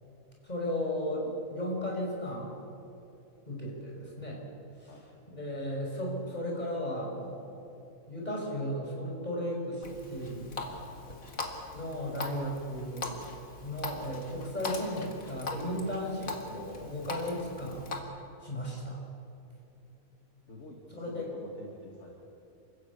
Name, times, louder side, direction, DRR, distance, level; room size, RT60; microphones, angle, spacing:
voice 1, 0.4-2.5 3.5-4.4 4.8-4.9 5.3-7.5 8.1-10.5 11.7-13.2 13.6-17.9 18.4-19.0 20.9-21.3, equal, 30° left, -2 dB, 5.7 m, -35 dB
Water tap faucet, 9.8-18.0, left 3 dB, 70° left, 2.7 m, -41 dB
voice 2, 20.5-22.1, left 2 dB, 55° left, -1 dB, 2.5 m, -48 dB
27.5 x 15.5 x 8.4 m, 2.8 s
omnidirectional pair, 1.5 m